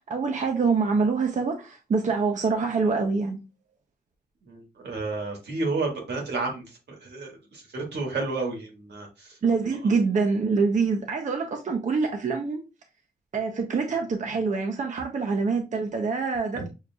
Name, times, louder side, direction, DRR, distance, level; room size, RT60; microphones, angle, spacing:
voice 1, 0.1-3.4 9.4-12.6 13.3-16.7, right 4 dB, 45° right, 0.6 m, -25 dB
voice 2, 4.5-6.6 7.0-9.1 16.5-16.6, right 3 dB, 85° right, 1.5 m, -31 dB
6.3 x 2.5 x 2.3 m
wide cardioid pair, 115°, 17 cm